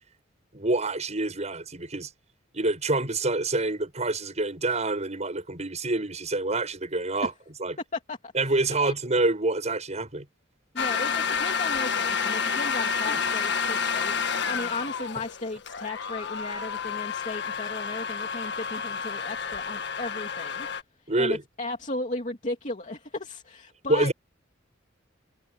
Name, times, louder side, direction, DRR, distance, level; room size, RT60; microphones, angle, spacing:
voice 1, 0.5-2.1 2.5-7.3 7.6-7.8 8.3-10.3 13.1-13.2 21.1-21.4 23.9-24.1, right 2 dB, 35° right, 7.1 m, -27 dB
voice 2, 7.9-8.3 8.8-8.9 10.7-20.7 21.2-24.1, left 2 dB, 40° left, 2.7 m, -35 dB
sound 1, 10.8-20.8, left 6 dB, 65° left, 1.6 m, -29 dB
head